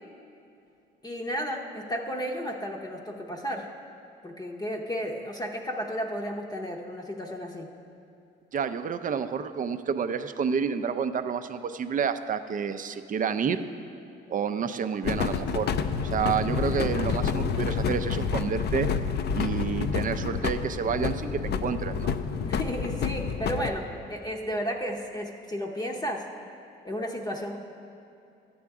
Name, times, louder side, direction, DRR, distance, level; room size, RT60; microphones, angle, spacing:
voice 1, 1.0-3.7 4.2-7.7 22.5-26.3 26.8-27.6, equal, 20° left, 0 dB, 0.7 m, -33 dB
voice 2, 8.5-13.7 14.3-15.7 16.0-18.9 19.3-22.1, right 6 dB, 40° right, 10 dB, 0.5 m, -29 dB
sound 1, 15.0-23.7, left 6 dB, 55° left, 0.5 m, -29 dB
12.5 x 8.6 x 3.6 m, 2.6 s
cardioid pair, 90°, 20 cm